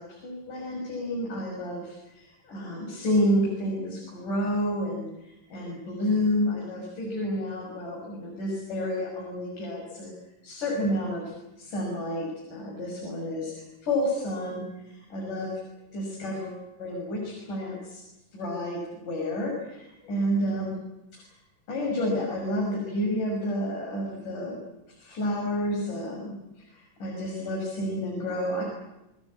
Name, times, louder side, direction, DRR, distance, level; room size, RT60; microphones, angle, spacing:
voice 1, 0.0-10.1 10.4-15.5 15.9-18.0 18.3-20.7 21.2-21.3 21.7-24.6 25.0-28.6, equal, 65° left, -2 dB, 7.9 m, -30 dB
29.0 x 20.0 x 8.8 m, 0.93 s
omnidirectional pair, 3.9 m